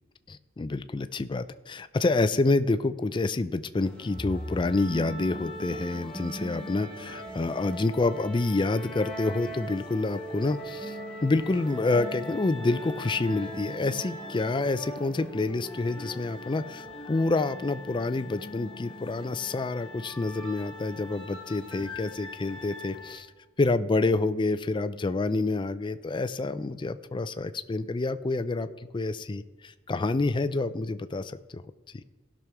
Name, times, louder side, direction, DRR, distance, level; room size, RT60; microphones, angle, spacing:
voice 1, 0.3-23.3 23.6-28.7 28.9-31.6 31.9-32.0, left 3 dB, 25° left, 12 dB, 0.4 m, -28 dB
sound 1, 3.8-23.2, equal, 5° left, 1.6 m, -40 dB
16.5 x 6.3 x 3.5 m, 1.3 s
head